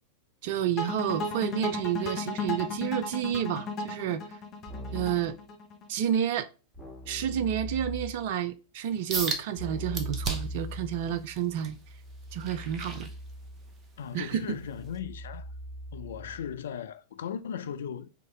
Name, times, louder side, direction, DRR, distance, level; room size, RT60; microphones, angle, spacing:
voice 1, 0.4-4.2 4.9-5.4 5.9-6.5 7.1-11.8 12.3-13.1 14.1-14.6, right 9 dB, 50° right, 0.4 m, -30 dB
sound 1, 0.8-5.9, left 3 dB, 30° left, 0.8 m, -34 dB
Keyboard (musical), 4.7-5.3 6.7-8.3 9.6-16.6, equal, 5° left, 1.9 m, -41 dB
sound 2, 9.1-9.4 9.9-10.6 11.1-13.7 14.2-14.4 15.0-15.1, right 4 dB, 25° right, 0.8 m, -35 dB
voice 2, 14.0-15.5 15.9-18.1, left 8 dB, 60° left, 0.3 m, -37 dB
3.8 x 3.1 x 3.6 m
figure-of-eight pair, 90°, 0 cm